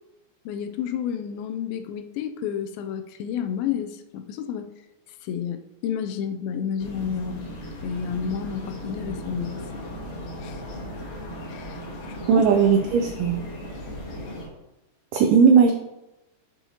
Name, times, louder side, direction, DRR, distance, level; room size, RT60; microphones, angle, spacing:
voice 1, 0.5-4.7 5.2-7.5 7.8-9.6 10.4-10.6 11.5-12.5, left 8 dB, 85° left, 8 dB, 2.3 m, -31 dB
sound 1, 6.8-14.5, equal, 65° left, 2.9 m, -36 dB
voice 2, 12.3-13.4 15.1-15.7, right 6 dB, 90° right, 4 dB, 1.8 m, -17 dB
7.0 x 7.0 x 2.8 m, 0.98 s
omnidirectional pair, 4.3 m